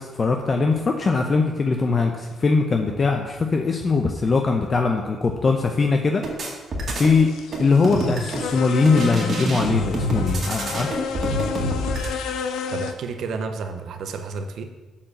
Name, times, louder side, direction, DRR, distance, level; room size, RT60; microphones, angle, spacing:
voice 1, 0.0-6.2 7.0-7.3 7.6-11.1, left 4 dB, 40° left, 3 dB, 0.7 m, -21 dB
sound 1, 6.2-7.2 7.5-8.5 8.8-12.1, right 1 dB, 50° right, 2.1 m, -26 dB
sound 2, 7.2-12.9, left 7 dB, 85° left, 0.6 m, -31 dB
voice 2, 12.7-14.6, right 4 dB, 70° right, 6 dB, 0.7 m, -31 dB
7.2 x 4.6 x 6.5 m, 1.2 s
cardioid pair, 90°, 0 cm